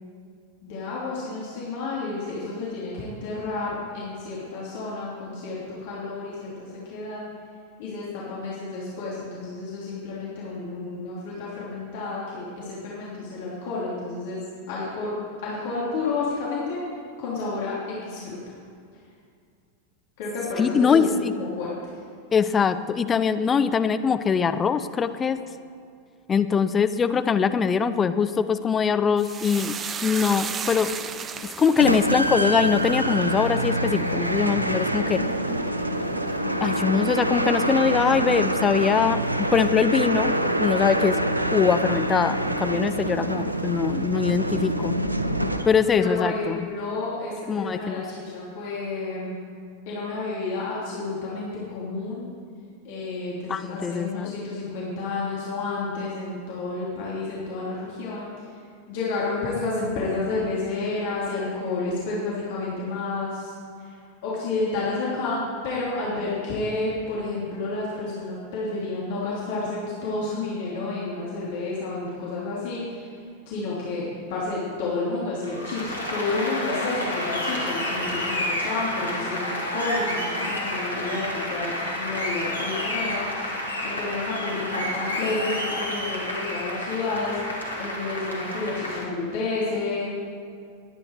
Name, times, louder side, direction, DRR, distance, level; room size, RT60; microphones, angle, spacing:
voice 1, 0.6-7.2 7.8-15.1 15.4-16.8 17.2-18.5 20.2-21.0 21.3-21.9 45.9-49.4 49.9-52.3 52.8-58.3 58.9-63.5 63.8-63.9 64.2-73.2 73.5-90.1, left 3 dB, 50° left, -7 dB, 3.2 m, -30 dB
voice 2, 20.6-21.3 22.3-25.4 26.3-29.8 30.0-30.9 31.6-35.2 36.6-41.2 41.5-44.9 45.7-46.6 47.5-48.0 53.5-54.3, left 6 dB, 20° left, 10 dB, 0.7 m, -22 dB
sound 1, 29.2-37.8 38.1-38.7 39.0-39.3, right 6 dB, 25° right, 0.6 m, -37 dB
sound 2, 31.8-46.0, right 1 dB, 85° right, 0.7 m, -25 dB
Applause, 75.4-89.1, left 1 dB, 85° left, 2.1 m, -30 dB
19.5 x 9.7 x 4.8 m, 2.3 s
figure-of-eight pair, 90°, 0 cm